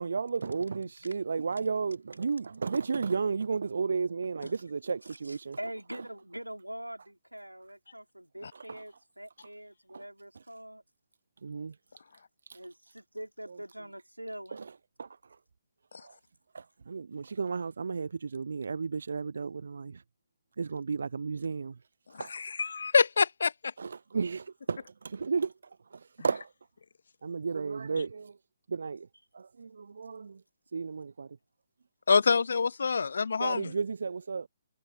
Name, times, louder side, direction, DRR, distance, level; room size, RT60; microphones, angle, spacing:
voice 1, 0.0-5.6 8.7-8.8 9.9-10.0 11.4-11.7 12.5-12.6 14.5-14.6 15.0-15.1 16.0-16.1 16.5-20.0 20.6-21.8 22.2-22.3 23.8-25.5 25.9-26.5 27.2-28.4 28.7-29.1 29.3-30.4 30.7-31.3 33.4-34.5, right 5 dB, 60° right, 0.6 m, -33 dB
voice 2, 5.1-10.8 12.5-14.7, right 1 dB, 90° right, 5.3 m, -43 dB
voice 3, 22.3-23.5 32.1-33.7, left 5 dB, 60° left, 0.6 m, -25 dB
figure-of-eight pair, 135°, 0 cm